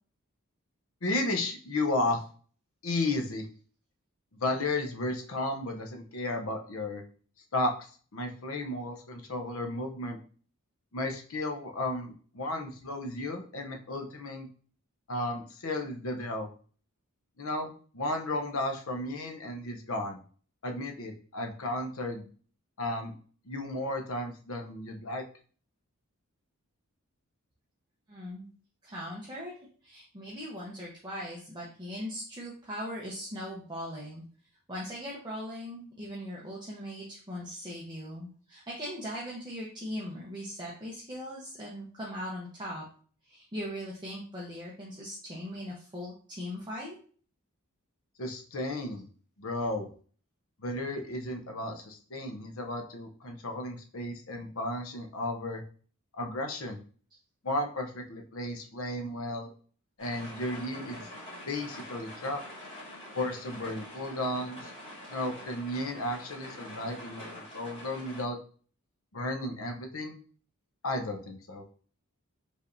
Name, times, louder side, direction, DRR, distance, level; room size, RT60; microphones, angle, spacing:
voice 1, 1.0-2.2 2.8-3.4 4.4-7.0 7.5-7.7 8.1-10.2 10.9-14.5 15.1-16.5 17.4-20.2 20.6-22.3 22.8-23.1 23.5-25.2 48.2-49.0 49.4-49.9 50.6-55.6 56.2-56.8 57.4-59.5 60.0-61.0 61.4-62.4 63.1-64.7 65.1-68.4 69.1-70.2 70.8-71.6, left 2 dB, 65° left, 3 dB, 0.7 m, -33 dB
voice 2, 28.1-28.4 28.8-29.5 29.8-34.2 34.7-42.8 43.3-47.0, equal, 20° right, -5 dB, 0.8 m, -39 dB
sound 1, 60.0-68.2, left 1 dB, 25° left, 1.9 m, -45 dB
5.3 x 3.3 x 2.6 m, 0.43 s
head